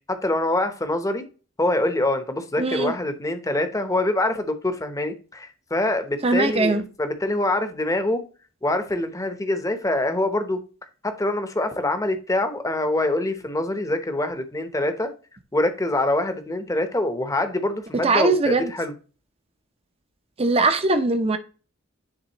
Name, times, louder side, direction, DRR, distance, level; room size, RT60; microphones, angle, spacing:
voice 1, 0.1-1.2 1.6-8.2 8.6-10.6 11.0-15.1 15.5-18.9, left 1 dB, 15° left, 0.8 m, -25 dB
voice 2, 2.6-2.9 6.2-6.8 18.0-18.7 20.4-21.4, right 3 dB, 30° right, 0.6 m, -21 dB
9.7 x 3.6 x 2.9 m
head